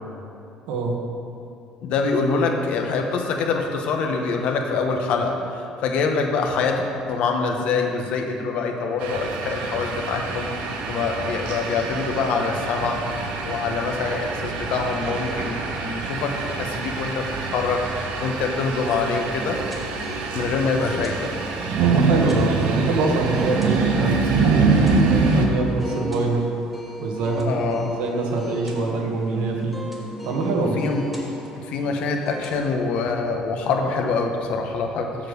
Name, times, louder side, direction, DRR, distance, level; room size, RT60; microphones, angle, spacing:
voice 1, 1.8-6.8 7.1-13.0 13.4-19.6 20.3-21.3 27.5-27.9 30.6-31.0 31.7-35.1, left 4 dB, 60° left, 3 dB, 1.0 m, -25 dB
sound 1, 9.0-25.5, right 4 dB, 90° right, 1.1 m, -25 dB
sound 2, 19.4-32.8, right 1 dB, 5° right, 1.4 m, -36 dB
voice 2, 21.8-24.2 24.5-26.5 27.0-29.8 30.2-30.8, right 3 dB, 70° right, 1 dB, 1.4 m, -25 dB
7.4 x 7.0 x 6.5 m, 2.6 s
cardioid pair, 160°, 2 cm